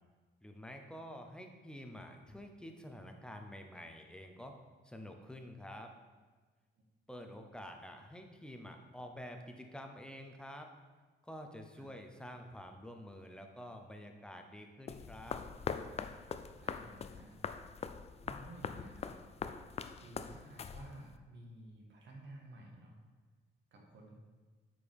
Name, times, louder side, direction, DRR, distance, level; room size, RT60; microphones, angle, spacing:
voice 1, 0.4-4.5 4.8-5.9 7.1-10.7 11.2-15.4, equal, 5° left, 4 dB, 0.8 m, -49 dB
sound 1, 14.9-21.2, left 6 dB, 30° left, 0.4 m, -43 dB
voice 2, 16.6-17.4 18.2-19.2 20.0-23.0 23.7-24.2, right 1 dB, 65° right, 0 dB, 1.6 m, -53 dB
8.3 x 5.1 x 3.6 m, 1.4 s
cardioid pair, 90°, 20 cm